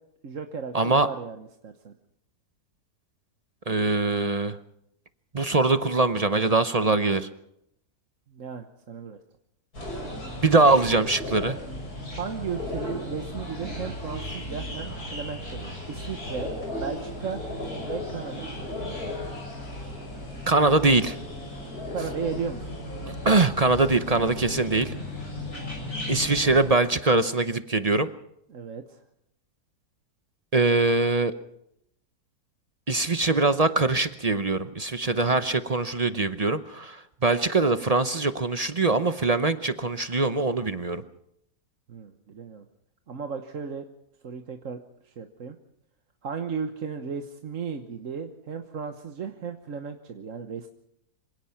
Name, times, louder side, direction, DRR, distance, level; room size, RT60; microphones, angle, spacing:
voice 1, 0.2-1.9 8.3-9.2 12.1-16.5 16.8-17.4 17.9-19.1 21.9-22.7 28.5-29.0 41.9-42.6 43.1-43.9 44.2-44.8 45.0-45.6 46.2-50.7, right 6 dB, 50° right, 6 dB, 1.5 m, -35 dB
voice 2, 0.7-1.1 3.7-4.6 5.3-7.3 10.4-11.6 20.5-21.2 23.0-24.9 26.1-28.1 30.5-31.3 32.9-41.0, right 3 dB, 35° right, 11 dB, 0.6 m, -22 dB
sound 1, 9.7-26.7, left 1 dB, 65° left, 6.8 m, -35 dB
26.0 x 17.0 x 5.9 m, 0.77 s
omnidirectional pair, 1.8 m